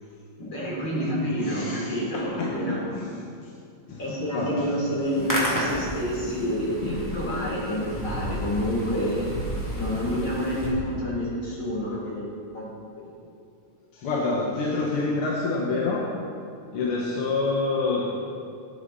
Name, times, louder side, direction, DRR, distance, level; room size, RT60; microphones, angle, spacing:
voice 1, 0.4-3.1 4.0-9.3 9.8-12.7, equal, 45° left, -6 dB, 4.4 m, -28 dB
voice 2, 1.4-3.1 3.4-3.5 3.9-4.7 6.8-7.1 13.9-16.2 16.7-18.1, left 3 dB, 60° left, -3 dB, 1.8 m, -28 dB
Hands, 5.0-10.7, equal, 5° left, 2.3 m, -32 dB
18.5 x 9.0 x 4.1 m, 2.4 s
omnidirectional pair, 3.3 m